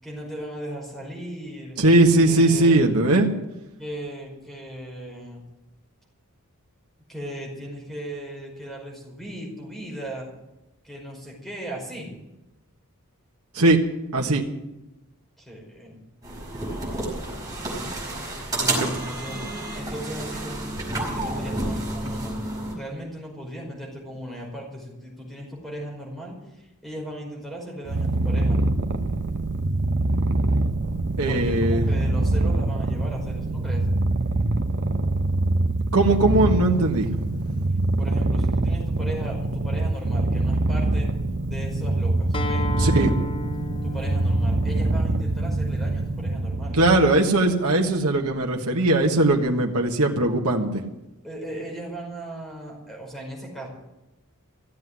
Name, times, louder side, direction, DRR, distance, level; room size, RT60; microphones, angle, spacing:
voice 1, 0.0-1.8 2.2-2.9 3.8-5.4 7.1-10.3 10.8-12.1 15.4-16.0 18.5-22.4 22.8-28.6 31.3-33.9 38.0-41.1 41.5-42.7 43.8-46.8 51.2-53.7, right 1 dB, ahead, -2 dB, 5.3 m, -37 dB
voice 2, 1.8-3.3 13.5-13.8 14.1-14.4 31.2-31.9 35.9-37.2 42.8-43.1 46.7-50.8, right 2 dB, 80° right, 1 dB, 1.6 m, -19 dB
sound 1, 16.2-22.7, right 2 dB, 15° right, 5.0 m, -30 dB
Purr, 27.9-47.2, right 2 dB, 55° right, 0.9 m, -24 dB
Acoustic guitar, 42.3-47.5, left 3 dB, 25° left, 0.5 m, -36 dB
15.5 x 8.0 x 9.7 m, 0.97 s
head